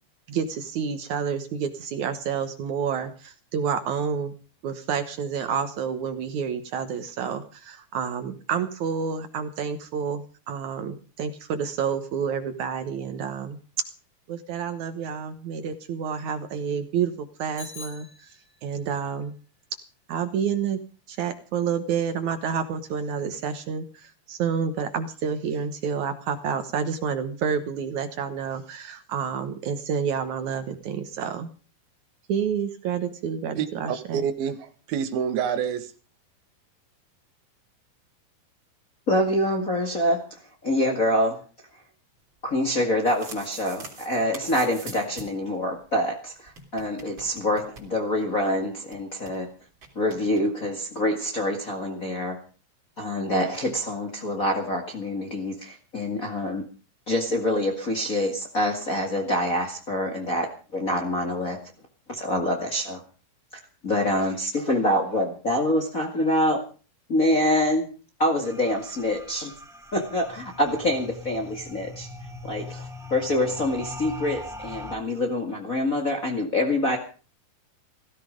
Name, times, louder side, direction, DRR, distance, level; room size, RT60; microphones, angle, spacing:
voice 1, 0.3-4.3 4.6-13.6 14.3-18.3 18.6-19.4 20.1-20.8 21.1-31.5 32.3-34.2, right 7 dB, 65° right, 2.2 m, -29 dB
Bicycle bell, 17.6-18.8, left 5 dB, 45° left, 4.3 m, -44 dB
voice 2, 33.6-35.9, right 8 dB, 80° right, 3.2 m, -28 dB
voice 3, 39.1-41.4 42.4-49.5 49.9-52.4 53.0-56.6 57.1-61.6 62.1-63.0 63.8-66.6 67.1-67.9 68.2-69.5 69.9-72.1 72.4-77.0, left 1 dB, 30° left, 1.6 m, -26 dB
sound 1, 42.9-45.5 45.8-45.9 46.0-46.1 46.5-48.4 48.6-48.7 48.9-49.4 49.8-50.4, right 3 dB, 35° right, 3.8 m, -44 dB
sound 2, 68.4-75.0, left 2 dB, ahead, 0.6 m, -41 dB
16.5 x 15.0 x 5.2 m
omnidirectional pair, 4.3 m